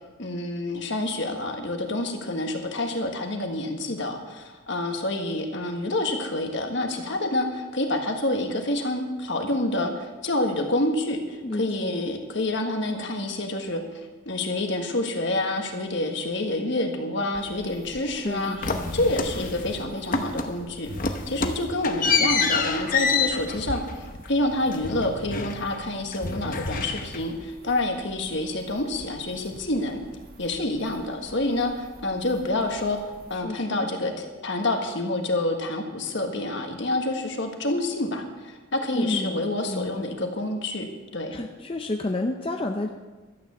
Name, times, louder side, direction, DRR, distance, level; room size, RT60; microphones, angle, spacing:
voice 1, 0.2-18.6 18.9-30.0 30.4-33.0 33.3-40.9 41.1-41.4, left 1 dB, 60° left, 4 dB, 1.6 m, -28 dB
voice 2, 11.4-12.0 18.2-18.9 33.3-33.9 38.9-40.1 41.3-42.9, left 2 dB, 25° left, 4 dB, 0.5 m, -31 dB
sound 1, 17.3-33.4, equal, 45° right, 2.0 m, -49 dB
sound 2, 18.6-19.8 20.1-20.6 20.9-25.8 26.1-27.4, left 5 dB, 40° left, 0.9 m, -27 dB
12.5 x 8.9 x 6.9 m, 1.3 s
head